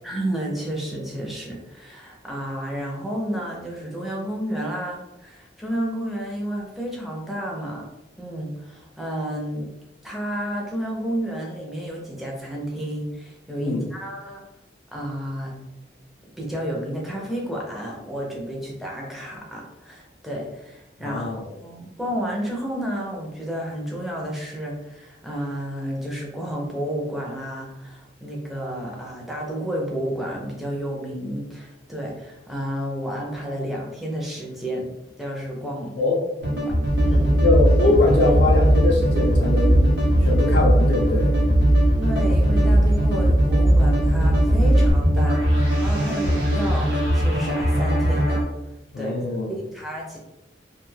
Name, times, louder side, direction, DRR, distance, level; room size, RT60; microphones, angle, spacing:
voice 1, 0.0-7.9 8.2-9.7 10.0-14.4 14.9-15.6 16.4-21.3 21.6-34.9 35.2-36.0 36.6-36.7 37.0-37.4 42.0-48.4 49.0-50.2, equal, ahead, -3 dB, 0.5 m, -31 dB
voice 2, 13.6-13.9 21.0-21.5 36.0-36.2 37.4-39.9 40.2-41.3 48.9-49.5, left 2 dB, 65° left, -2 dB, 0.4 m, -22 dB
sound 1, 36.4-48.4, equal, 85° right, 0.8 m, -22 dB
sound 2, 36.9-44.9, right 1 dB, 45° right, 0.8 m, -20 dB
2.5 x 2.3 x 3.1 m, 0.94 s
head